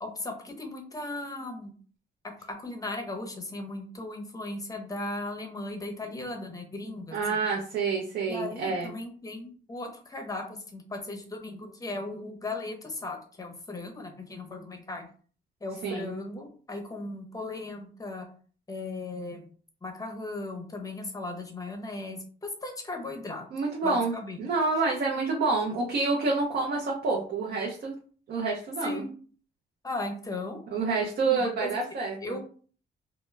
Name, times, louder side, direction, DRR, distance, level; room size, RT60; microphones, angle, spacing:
voice 1, 0.0-1.7 2.2-7.4 8.3-15.1 15.6-18.3 18.7-19.5 19.8-23.5 23.8-24.4 28.8-29.1 29.8-30.6 31.3-31.8 32.2-32.4, left 2 dB, 15° left, 3 dB, 0.7 m, -37 dB
voice 2, 7.1-8.9 15.8-16.1 23.5-24.1 24.4-27.9 28.3-29.0 30.7-32.4, right 4 dB, 50° right, -2 dB, 0.6 m, -28 dB
2.2 x 2.0 x 3.1 m, 0.43 s
cardioid pair, 90°, 20 cm